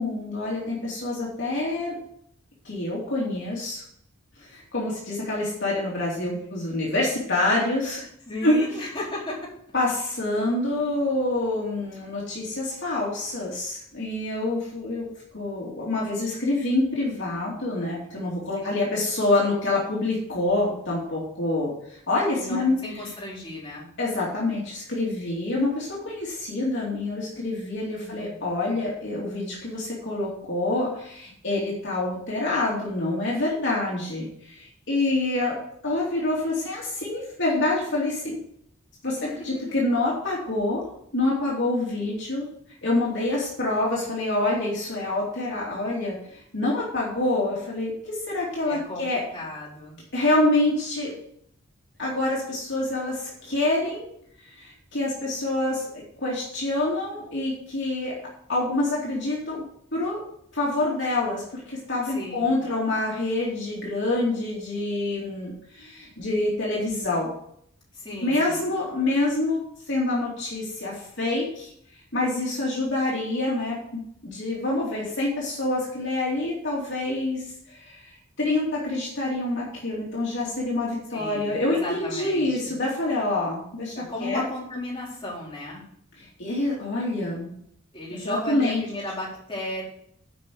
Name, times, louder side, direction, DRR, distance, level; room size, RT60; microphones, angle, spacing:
voice 1, 0.0-1.9 2.6-3.8 4.4-8.0 8.4-8.7 9.7-15.1 15.3-22.8 24.0-35.5 35.8-38.4 39.0-39.2 39.4-40.8 41.1-42.5 42.8-49.2 50.1-51.1 52.0-54.1 54.4-55.9 56.2-58.1 58.5-59.6 59.9-60.2 60.5-67.3 68.2-69.6 69.9-71.7 72.1-78.1 78.4-83.9 84.2-84.4 86.2-87.5 88.1-88.8, left 2 dB, 60° left, -5 dB, 2.9 m, -26 dB
voice 2, 6.3-6.6 8.3-9.5 18.6-18.9 22.4-23.9 28.0-28.4 39.2-39.3 48.6-50.0 62.0-62.5 67.9-68.6 81.1-82.7 83.9-85.9 87.9-89.8, left 1 dB, 25° left, -7 dB, 4.6 m, -35 dB
9.0 x 5.6 x 6.9 m, 0.69 s
head